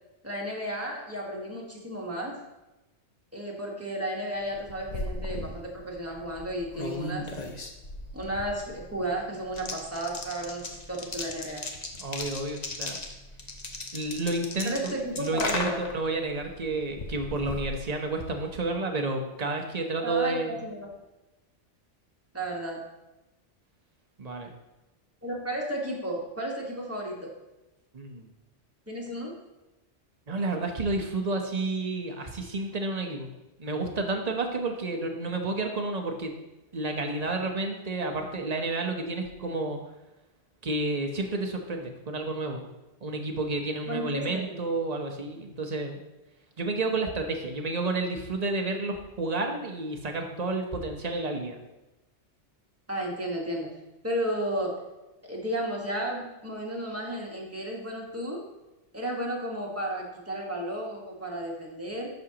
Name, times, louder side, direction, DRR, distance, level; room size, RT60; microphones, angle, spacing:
voice 1, 0.2-2.4 3.3-7.3 8.1-11.7 14.6-15.8 20.0-20.9 22.3-22.8 25.2-27.3 28.9-29.3 43.9-44.4 52.9-53.7 54.0-54.8 55.2-58.4 58.9-62.1, right 1 dB, 10° right, -2 dB, 1.5 m, -33 dB
sound 1, 4.5-18.5, left 2 dB, 40° left, 0.9 m, -37 dB
voice 2, 12.0-13.0 13.9-20.6 24.2-24.5 27.9-28.3 30.3-33.3 33.6-36.3 36.7-39.8 40.6-42.6 43.0-46.0 46.6-51.6, right 2 dB, 35° right, 3 dB, 1.0 m, -30 dB
11.0 x 6.6 x 2.9 m, 1.0 s
omnidirectional pair, 1.2 m